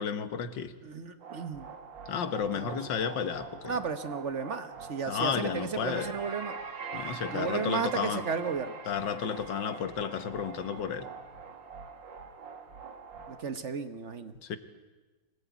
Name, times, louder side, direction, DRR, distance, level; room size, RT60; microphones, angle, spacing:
voice 1, 0.0-0.7 2.1-3.7 5.1-6.1 6.9-8.2 8.9-11.1 14.4-14.6, left 7 dB, 75° left, 11 dB, 2.0 m, -32 dB
voice 2, 0.8-1.7 2.5-2.8 3.6-6.5 7.3-8.8 13.3-14.3, right 5 dB, 45° right, 11 dB, 1.2 m, -34 dB
sound 1, 1.2-13.4, right 5 dB, 80° right, 2.7 m, -43 dB
24.5 x 18.5 x 9.3 m, 1.2 s
omnidirectional pair, 2.0 m